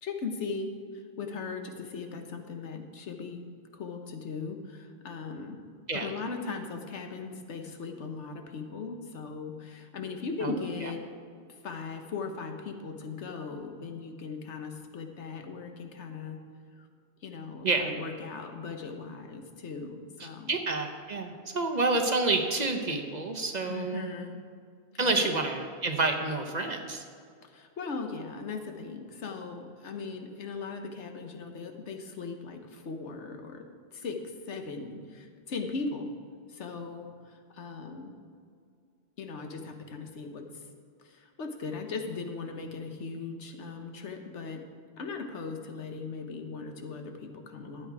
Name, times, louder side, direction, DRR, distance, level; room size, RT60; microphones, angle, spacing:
voice 1, 0.0-3.4 3.7-5.6 5.9-11.0 11.5-16.4 16.8-16.9 17.2-20.5 23.7-24.4 24.9-25.4 27.4-33.7 33.9-36.1 36.5-38.1 39.2-40.6 41.0-44.6 45.0-47.9, left 4 dB, 90° left, 5 dB, 1.3 m, -38 dB
voice 2, 20.2-24.1 25.0-27.0, right 3 dB, 40° right, 5 dB, 0.9 m, -29 dB
12.0 x 8.5 x 4.7 m, 2.2 s
omnidirectional pair, 1.2 m